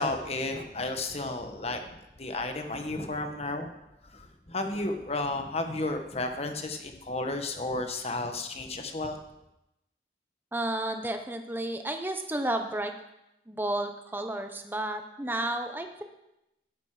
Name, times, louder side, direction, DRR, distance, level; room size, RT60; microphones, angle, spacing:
voice 1, 0.0-3.7 4.0-9.2, left 2 dB, 35° left, 5 dB, 1.4 m, -33 dB
voice 2, 10.5-12.9 13.5-16.0, right 1 dB, 10° right, 5 dB, 1.0 m, -32 dB
12.0 x 12.0 x 5.0 m, 0.89 s
head